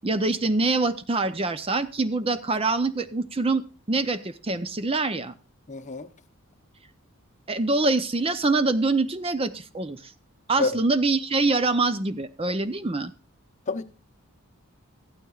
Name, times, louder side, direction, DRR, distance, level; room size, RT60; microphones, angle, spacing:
voice 1, 0.0-5.3 7.5-10.1 10.5-13.1, right 3 dB, 25° right, 0.6 m, -25 dB
voice 2, 5.7-6.1 10.6-10.8 13.7-13.8, left 3 dB, 35° left, 0.8 m, -28 dB
15.5 x 12.0 x 2.4 m
head